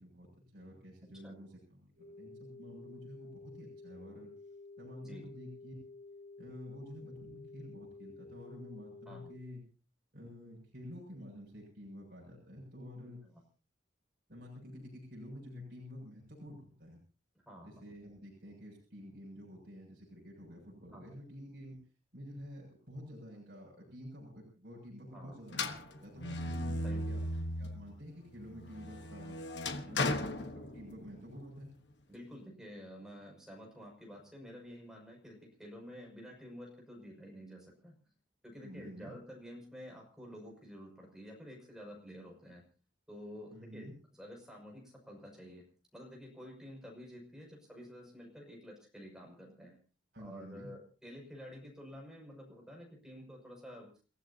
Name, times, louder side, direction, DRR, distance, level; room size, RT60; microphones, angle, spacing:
voice 1, 0.0-4.3 4.8-5.7 6.4-9.6 10.1-13.2 14.3-17.0 17.6-21.8 22.1-27.2 27.6-29.4 29.9-31.7 38.6-39.1 43.5-43.9 50.1-50.7, equal, 50° right, -3 dB, 7.2 m, -49 dB
sound 1, 2.0-9.4, left 3 dB, 70° right, 7.9 m, -52 dB
sound 2, 25.5-27.9 28.4-31.2, left 2 dB, 65° left, 1.4 m, -37 dB
voice 2, 29.8-30.2 32.1-37.9 38.4-42.6 43.1-45.6 45.9-49.8 50.2-53.9, equal, 5° right, -1 dB, 6.2 m, -50 dB
29.5 x 15.5 x 2.9 m, 0.36 s
head